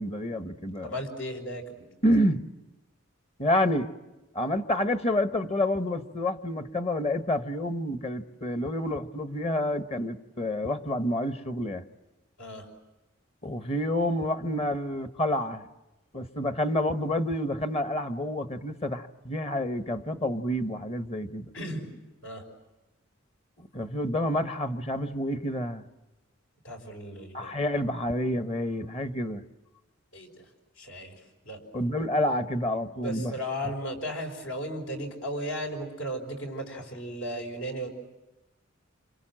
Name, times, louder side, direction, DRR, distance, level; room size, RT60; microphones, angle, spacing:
voice 1, 0.0-0.9 2.0-2.4 3.4-3.9 4.3-11.8 13.4-15.7 16.1-21.5 23.6-25.8 27.3-29.4 31.7-33.3, left 1 dB, 30° left, 9 dB, 1.2 m, -28 dB
voice 2, 0.8-1.9 12.4-12.7 21.5-21.9 22.2-22.5 26.6-27.6 30.1-30.4 30.8-31.6 33.0-37.9, equal, 75° left, 3 dB, 6.0 m, -35 dB
28.0 x 27.0 x 7.6 m, 1.0 s
head